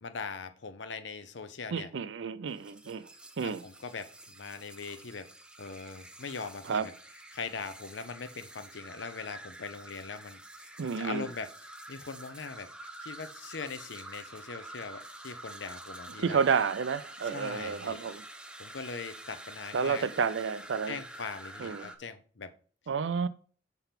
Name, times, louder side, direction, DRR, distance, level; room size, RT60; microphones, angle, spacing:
voice 1, 0.0-1.9 3.4-5.3 5.6-6.9 7.3-10.7 11.0-12.7 13.0-16.4 17.2-18.0 18.6-20.1 20.9-22.5, left 5 dB, 70° left, 0.6 m, -41 dB
voice 2, 1.7-3.1 3.4-3.6 6.7-6.9 10.8-11.3 16.2-18.2 19.7-21.0 21.6-21.9 22.9-23.3, right 6 dB, 80° right, 0.5 m, -30 dB
sound 1, 2.5-22.0, right 1 dB, 5° right, 0.5 m, -48 dB
5.8 x 3.4 x 5.8 m
head